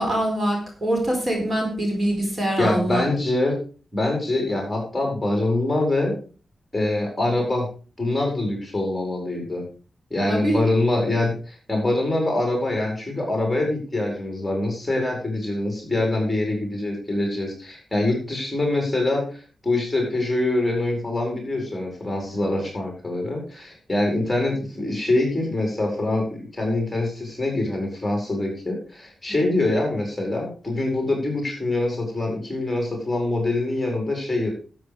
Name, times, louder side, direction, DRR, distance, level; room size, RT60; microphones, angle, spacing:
voice 1, 0.0-3.1 10.3-10.6 22.3-22.4, right 1 dB, 35° right, 1 dB, 4.4 m, -24 dB
voice 2, 2.6-3.6 3.9-6.2 6.7-7.7 8.0-9.6 10.1-34.5, left 2 dB, 5° left, 1 dB, 4.7 m, -24 dB
13.0 x 8.0 x 4.9 m, 0.38 s
wide cardioid pair, 145°, 0 cm